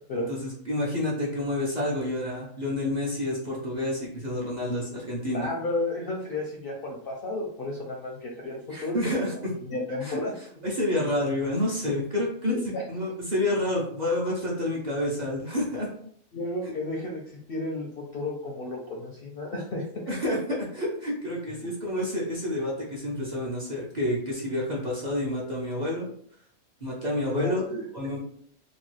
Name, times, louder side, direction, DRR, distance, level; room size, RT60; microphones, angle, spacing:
voice 1, 0.3-5.5 8.7-9.3 10.0-10.2 10.6-12.5 12.9-15.9 20.1-26.1 26.8-27.6 27.9-28.2, left 1 dB, 45° right, -4 dB, 0.6 m, -29 dB
voice 2, 5.3-10.3 12.4-12.8 16.3-19.9 27.3-27.9, left 2 dB, 60° left, -1 dB, 0.6 m, -32 dB
3.0 x 2.2 x 3.1 m, 0.62 s
omnidirectional pair, 1.4 m